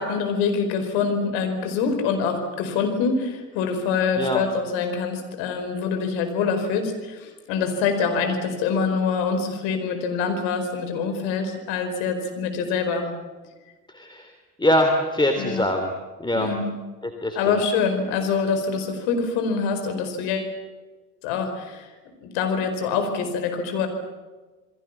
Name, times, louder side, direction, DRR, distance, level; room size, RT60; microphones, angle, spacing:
voice 1, 0.0-13.1 15.4-15.6 16.3-16.7 17.3-20.5 21.2-21.9 22.2-23.9, left 5 dB, 60° left, 7 dB, 4.8 m, -25 dB
voice 2, 13.9-14.3 14.6-15.9 16.2-16.5 17.0-17.5, left 1 dB, 10° left, 5 dB, 3.3 m, -23 dB
28.5 x 21.5 x 7.3 m, 1.3 s
figure-of-eight pair, 60°, 49 cm